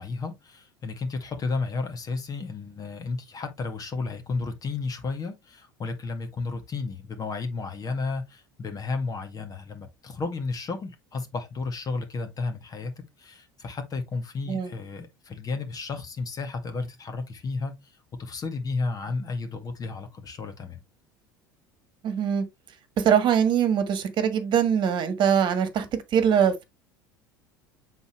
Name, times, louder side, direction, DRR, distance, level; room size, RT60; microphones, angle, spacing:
voice 1, 0.0-12.9 13.2-17.9 18.2-20.8, left 4 dB, 35° left, 2.0 m, -32 dB
voice 2, 22.0-22.4 23.0-25.9 26.1-26.6, right 8 dB, 45° right, 1.6 m, -22 dB
8.1 x 4.1 x 3.1 m
hypercardioid pair, 75°, 11 cm